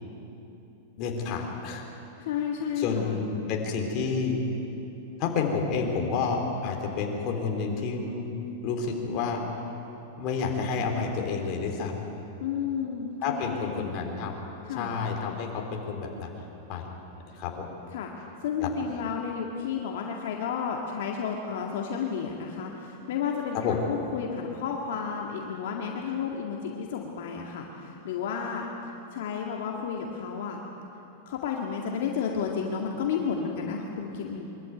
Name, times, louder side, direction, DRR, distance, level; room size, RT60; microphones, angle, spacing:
voice 1, 1.0-1.8 2.8-4.4 5.2-8.3 8.6-9.4 10.2-12.0 13.2-14.3 14.7-16.3 16.7-16.9 17.3-17.7 18.6-18.7 23.6-23.8, left 5 dB, 40° left, 1 dB, 3.5 m, -29 dB
voice 2, 2.2-3.2 12.4-13.9 14.6-15.0 17.9-18.1 18.4-28.6 29.1-30.6 31.3-34.5, left 6 dB, 65° left, 0 dB, 2.0 m, -32 dB
23.0 x 14.0 x 9.3 m, 3.0 s
supercardioid pair, 145°, 0 cm